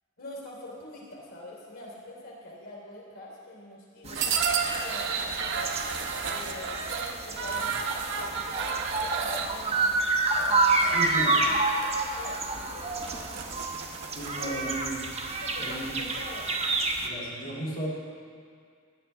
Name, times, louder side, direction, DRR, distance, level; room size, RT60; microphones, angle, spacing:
voice 1, 0.2-5.7 6.3-10.0 10.4-14.2 15.4-16.5, left 1 dB, 90° left, -3 dB, 3.1 m, -45 dB
sound 1, 4.1-17.1, right 3 dB, 30° right, 0.9 m, -29 dB
sound 2, 4.2-9.5 10.4-10.9 11.2-11.4 11.8-11.9 12.3-12.4 12.8-14.4, right 5 dB, 60° right, 0.9 m, -31 dB
voice 2, 10.8-11.3 14.1-15.1 15.6-16.0 16.9-17.9, right 1 dB, 65° left, -6 dB, 2.9 m, -35 dB
16.5 x 10.5 x 3.4 m, 2.2 s
head